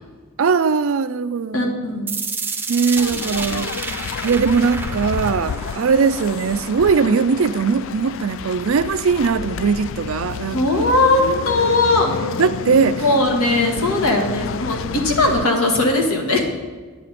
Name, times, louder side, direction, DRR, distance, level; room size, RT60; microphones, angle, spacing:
voice 1, 0.4-1.8 2.7-3.9 4.2-10.6 12.2-13.0, right 5 dB, 70° right, 0.4 m, -20 dB
voice 2, 1.5-2.1 10.5-12.1 13.0-16.4, left 2 dB, 85° left, 1.7 m, -19 dB
sound 1, 2.1-8.1, right 4 dB, 10° right, 0.6 m, -31 dB
sound 2, 3.0-15.5, left 6 dB, 60° left, 0.3 m, -29 dB
10.0 x 9.8 x 4.2 m
head